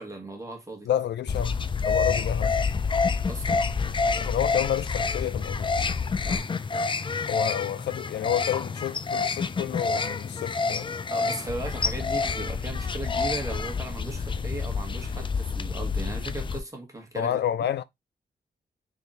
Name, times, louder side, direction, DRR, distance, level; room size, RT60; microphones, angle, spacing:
voice 1, 0.0-0.9 3.3-3.6 6.2-6.5 11.1-17.4, right 2 dB, 20° right, 1.6 m, -37 dB
voice 2, 0.9-1.6 1.9-2.6 4.2-5.7 7.3-10.9 17.2-17.8, left 10 dB, 90° left, 0.4 m, -29 dB
sound 1, 1.3-16.6, left 4 dB, 30° left, 0.4 m, -28 dB
3.8 x 3.5 x 2.7 m
wide cardioid pair, 90°, 17 cm